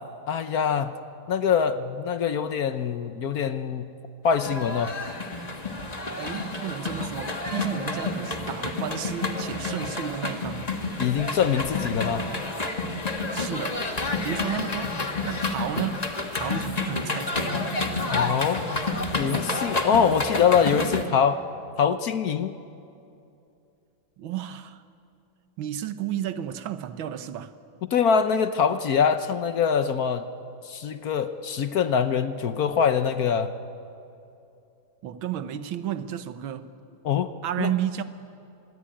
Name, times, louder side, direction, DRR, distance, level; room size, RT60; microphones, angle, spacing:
voice 1, 0.3-0.9 1.3-3.9 4.2-4.9 11.0-12.2 18.1-18.6 19.1-21.4 21.8-22.6 27.9-30.3 30.6-33.5 37.0-37.3 37.6-37.7, left 7 dB, 60° left, 10 dB, 1.1 m, -24 dB
sound 1, 4.3-21.0, left 3 dB, 20° left, 1.5 m, -29 dB
voice 2, 6.2-10.7 13.3-13.8 14.2-15.0 15.2-17.7 24.2-24.8 25.6-27.5 35.0-36.7 37.4-38.0, right 10 dB, 85° right, 11 dB, 1.8 m, -32 dB
25.5 x 21.5 x 8.8 m, 2.7 s
omnidirectional pair, 2.1 m